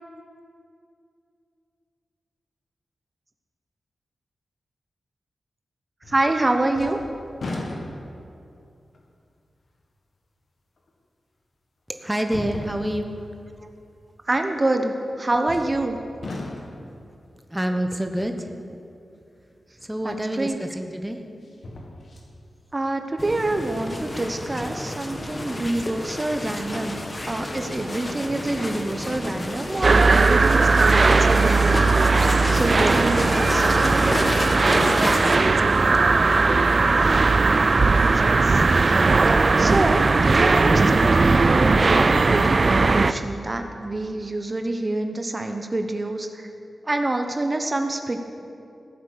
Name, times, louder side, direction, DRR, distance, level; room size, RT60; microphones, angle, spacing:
sound 1, 6.0-6.4 6.7-8.3 8.9-9.0 10.9-11.0 12.2-13.1 15.5-15.9 16.2-16.9 19.9-20.0 21.4-22.3 22.8-22.9, left 2 dB, 65° left, 1.8 m, -36 dB
voice 1, 6.1-7.0 13.6-13.7 14.3-16.0 20.0-20.6 22.7-27.0 27.3-31.8 32.5-33.7 38.0-38.6 38.9-39.0 39.6-46.5 46.8-48.2, right 2 dB, 30° right, 5 dB, 1.0 m, -26 dB
voice 2, 11.9-13.2 17.5-18.5 19.8-21.2 34.4-36.2 38.4-38.7, right 1 dB, 10° right, 5 dB, 1.0 m, -29 dB
sound 2, 23.2-35.4, left 1 dB, 30° left, 1.5 m, -29 dB
sound 3, 29.8-43.1, right 3 dB, 50° right, 0.4 m, -18 dB
15.5 x 8.8 x 7.0 m, 2.5 s
cardioid pair, 65°, 0 cm